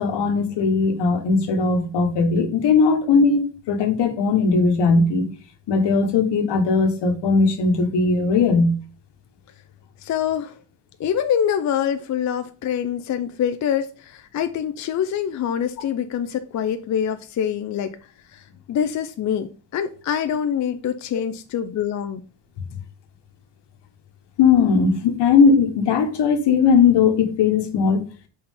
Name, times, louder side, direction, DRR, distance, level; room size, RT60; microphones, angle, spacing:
voice 1, 0.0-5.2 5.7-8.7 24.4-28.0, left 4 dB, 70° left, 1.3 m, -18 dB
voice 2, 10.0-10.5 11.0-18.0 18.3-22.2, left 9 dB, 45° left, 0.4 m, -25 dB
5.5 x 4.3 x 5.5 m
cardioid pair, 180°, 43 cm